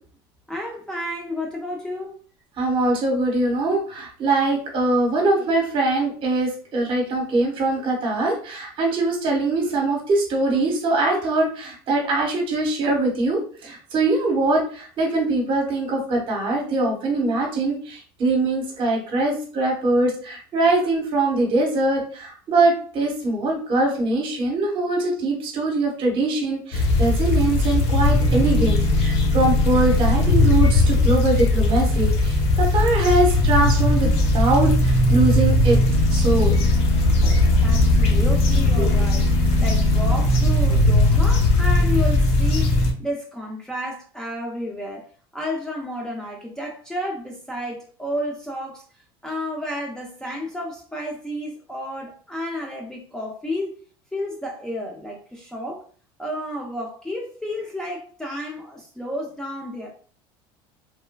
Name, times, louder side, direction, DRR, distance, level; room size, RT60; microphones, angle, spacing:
voice 1, 0.5-2.2 37.6-39.3 39.6-42.7 43.0-45.0 45.3-48.8 49.2-53.7 54.1-55.8 56.2-59.9, left 1 dB, 5° left, -1 dB, 0.5 m, -31 dB
voice 2, 2.6-35.8 36.1-36.6 38.8-38.9, right 2 dB, 45° right, 1 dB, 1.1 m, -22 dB
sound 1, 26.7-42.9, left 2 dB, 60° left, 0.7 m, -18 dB
3.2 x 2.1 x 2.2 m, 0.44 s
supercardioid pair, 105°, 12 cm